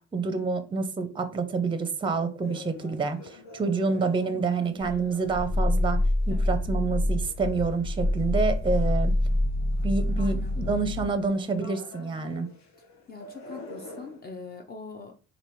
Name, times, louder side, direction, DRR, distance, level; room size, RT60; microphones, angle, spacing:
voice 1, 0.1-6.0 6.3-9.1 9.8-12.5, right 4 dB, 15° right, 0.5 m, -28 dB
sound 1, 2.4-14.4, left 2 dB, 65° left, 1.0 m, -49 dB
voice 2, 4.6-5.1 6.3-6.5 10.2-10.6 13.1-15.1, left 4 dB, 30° left, 0.5 m, -43 dB
Growling, 4.8-11.2, left 1 dB, 15° left, 1.2 m, -26 dB
3.4 x 2.5 x 4.4 m
cardioid pair, 90°, 30 cm